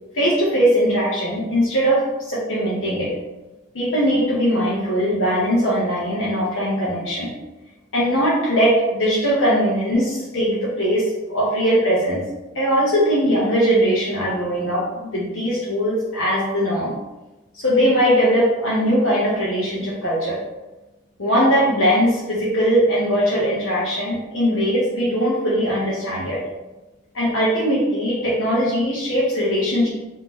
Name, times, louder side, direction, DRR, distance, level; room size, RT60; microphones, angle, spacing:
voice 1, 0.1-3.1 3.7-7.3 7.9-12.3 12.5-16.9 17.5-20.4 21.2-26.4 27.1-29.9, equal, 65° left, -7 dB, 0.9 m, -20 dB
3.6 x 2.8 x 2.9 m, 1.1 s
head